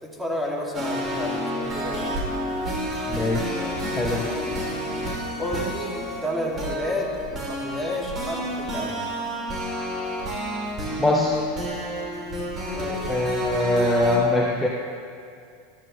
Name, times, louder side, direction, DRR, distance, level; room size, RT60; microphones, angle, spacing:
voice 1, 0.0-2.1 5.4-9.0 12.7-13.1, left 1 dB, 10° right, -2 dB, 2.6 m, -31 dB
sound 1, 0.7-14.2, equal, 30° right, 3.4 m, -30 dB
voice 2, 3.1-3.6 4.0-4.3 11.0-11.4 13.1-14.7, left 1 dB, 10° left, -2 dB, 1.2 m, -22 dB
13.5 x 12.5 x 3.3 m, 2.3 s
hypercardioid pair, 100°, 0 cm